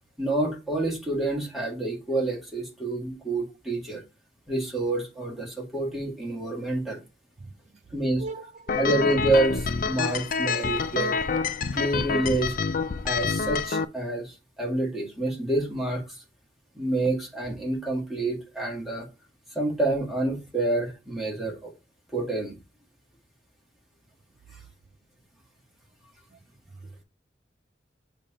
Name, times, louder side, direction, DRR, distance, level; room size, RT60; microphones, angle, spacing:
voice 1, 0.2-4.0 4.5-7.0 7.9-8.2 8.8-11.2 11.7-12.6 13.0-16.2 16.8-19.1 19.5-21.7 22.1-22.6, right 2 dB, ahead, 1.7 m, -28 dB
voice 2, 7.4-7.8 8.2-8.8 26.3-26.4 26.7-26.9, right 3 dB, 40° right, 0.4 m, -40 dB
sound 1, 8.7-13.8, left 5 dB, 45° left, 0.4 m, -27 dB
6.7 x 2.8 x 4.9 m
head